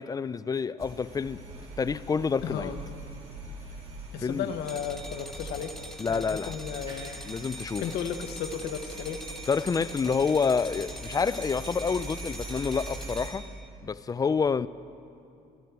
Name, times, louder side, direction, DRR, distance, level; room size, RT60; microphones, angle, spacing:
voice 1, 0.0-1.4 1.8-2.7 4.2-4.5 6.0-6.6 7.3-7.8 9.5-13.5 13.8-14.7, left 5 dB, 20° left, 0.4 m, -28 dB
sound 1, 0.8-13.3, right 2 dB, 35° right, 4.4 m, -42 dB
voice 2, 2.4-2.8 4.1-5.7 6.1-7.2 7.8-9.2, left 8 dB, 75° left, 0.9 m, -34 dB
sound 2, 4.6-13.7, equal, 5° left, 0.9 m, -44 dB
24.0 x 12.5 x 4.6 m
cardioid pair, 110°, 17 cm